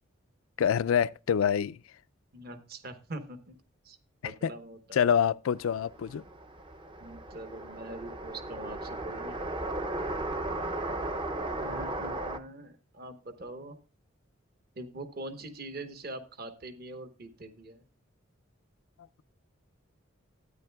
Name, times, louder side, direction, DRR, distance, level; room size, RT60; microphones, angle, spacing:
voice 1, 0.6-1.8 4.2-4.5 4.9-6.2 10.5-10.7, left 8 dB, 80° left, 0.4 m, -26 dB
voice 2, 2.3-3.6 3.8-4.0 4.2-4.8 7.0-9.4 11.6-13.8 14.7-17.8, right 2 dB, 45° right, 1.0 m, -43 dB
sound 1, 5.6-12.4, right 2 dB, 25° right, 0.5 m, -36 dB
13.5 x 9.6 x 2.3 m
head